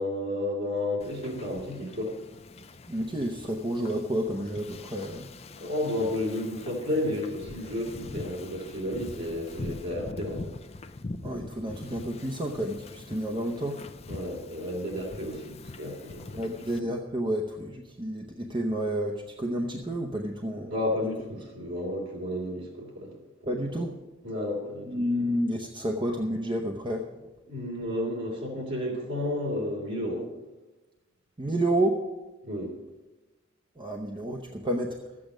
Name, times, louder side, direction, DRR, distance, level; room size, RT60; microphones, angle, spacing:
voice 1, 0.0-2.2 5.6-10.4 14.1-16.4 20.7-23.9 24.2-25.0 27.5-30.3 32.4-32.8, left 1 dB, 65° right, -3 dB, 3.1 m, -32 dB
Wind / Ocean, 1.0-16.8, left 2 dB, 30° left, 0.5 m, -43 dB
voice 2, 2.9-5.3 11.2-13.8 16.3-20.7 23.5-23.9 24.9-27.3 31.4-32.0 33.8-35.0, right 1 dB, 25° right, 1 dB, 0.8 m, -30 dB
13.0 x 8.6 x 6.2 m, 1.1 s
head